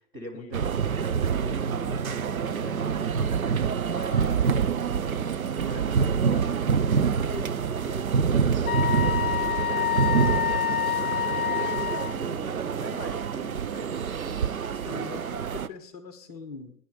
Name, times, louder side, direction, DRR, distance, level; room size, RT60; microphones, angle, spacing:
voice 1, 0.0-6.8 7.2-14.4, equal, 10° right, -5 dB, 1.0 m, -43 dB
sound 1, 0.5-15.7, right 6 dB, 60° right, 0.7 m, -26 dB
Wind instrument woodwind instrument, 8.7-12.1, left 11 dB, 60° left, 0.6 m, -27 dB
voice 2, 14.9-16.7, left 4 dB, 25° left, 8 dB, 1.2 m, -42 dB
15.5 x 9.9 x 5.2 m, 0.68 s
figure-of-eight pair, 130°, 49 cm